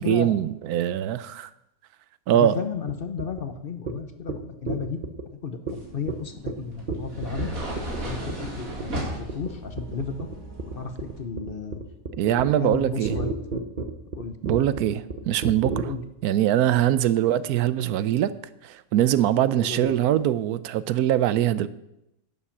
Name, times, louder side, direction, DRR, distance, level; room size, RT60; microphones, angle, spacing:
voice 1, 0.0-1.5 2.3-2.6 12.2-13.2 14.4-15.9 16.2-18.3 18.6-21.7, right 12 dB, 90° right, 16 dB, 1.1 m, -22 dB
voice 2, 2.3-5.0 5.3-7.5 8.0-10.3 10.7-11.8 12.3-13.3 14.1-14.4 15.8-16.0 19.5-20.0, left 6 dB, 45° left, 8 dB, 0.9 m, -33 dB
sound 1, 2.9-3.0 3.2-3.4 3.9-4.0 4.3-4.4 4.7-5.2 5.7-5.8 6.1-6.2 6.5-6.6 6.9-7.4 7.8-8.0 8.3-8.5 8.8-9.0 9.3-9.5 9.8-15.8, right 3 dB, 35° right, 1.0 m, -31 dB
sound 2, 5.7-11.2, right 1 dB, 65° right, 2.7 m, -36 dB
sound 3, 7.2-11.9, right 1 dB, 10° right, 1.4 m, -48 dB
11.0 x 7.3 x 7.2 m, 0.87 s
omnidirectional pair, 1.5 m